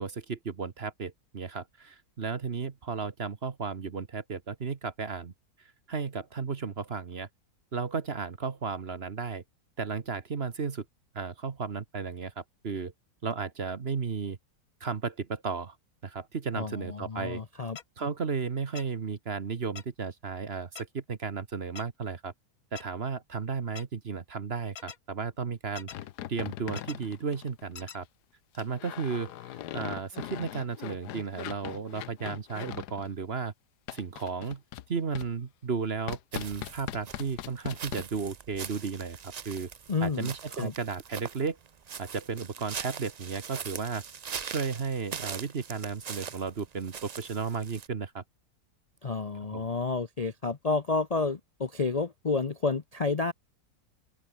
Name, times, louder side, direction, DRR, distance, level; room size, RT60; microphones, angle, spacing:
voice 1, 0.0-5.3 5.6-7.3 7.7-9.4 9.8-10.8 11.1-12.9 13.2-14.4 14.8-15.8 16.0-17.4 18.0-22.3 22.7-25.9 26.3-28.1 28.5-33.5 33.9-34.6 34.9-39.7 40.0-41.6 42.0-44.0 44.4-48.2 49.5-49.7, right 5 dB, 40° right, 1.4 m, -34 dB
voice 2, 16.5-17.8 39.9-40.3 40.6-40.7 49.0-53.3, left 4 dB, 35° left, 0.7 m, -30 dB
sound 1, 17.8-17.9 18.8-18.9 19.8-19.9 20.8-20.9 21.8-21.9 22.8-22.9 23.8-23.9 24.8-25.0 25.8-26.0 26.8-27.0 27.8-28.0, left 8 dB, 65° left, 1.7 m, -42 dB
sound 2, 25.9-27.9 28.5-33.1 33.9-34.9 35.1-35.3 36.1-38.0, left 13 dB, 90° left, 1.3 m, -40 dB
sound 3, 36.3-47.9, right 7 dB, 75° right, 0.3 m, -42 dB
open air
omnidirectional pair, 1.7 m